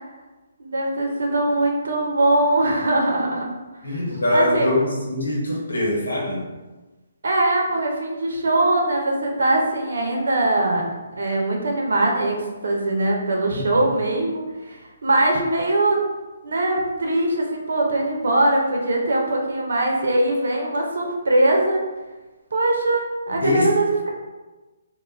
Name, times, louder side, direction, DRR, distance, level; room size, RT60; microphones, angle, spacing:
voice 1, 0.6-3.5 3.9-4.0 4.3-4.7 7.2-10.9 11.1-14.8 15.0-16.0 16.4-21.8 22.5-24.1, right 2 dB, 70° right, 0 dB, 0.6 m, -21 dB
voice 2, 3.8-6.4 13.5-13.9 23.3-23.7, left 1 dB, 85° left, -3 dB, 0.9 m, -23 dB
2.3 x 2.1 x 3.2 m, 1.2 s
hypercardioid pair, 145°, 0 cm